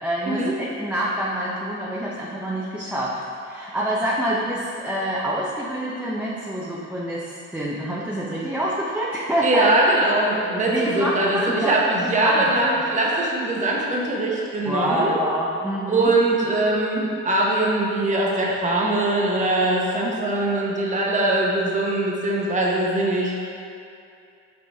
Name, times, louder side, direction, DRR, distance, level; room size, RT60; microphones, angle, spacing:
voice 1, 0.0-9.7 10.7-11.8 12.0-12.5 14.7-16.1, right 1 dB, 5° right, -6 dB, 0.6 m, -26 dB
voice 2, 9.4-15.2 15.9-23.3, right 2 dB, 25° right, -3 dB, 1.0 m, -22 dB
5.2 x 5.2 x 3.5 m, 2.5 s
cardioid pair, 90°, 30 cm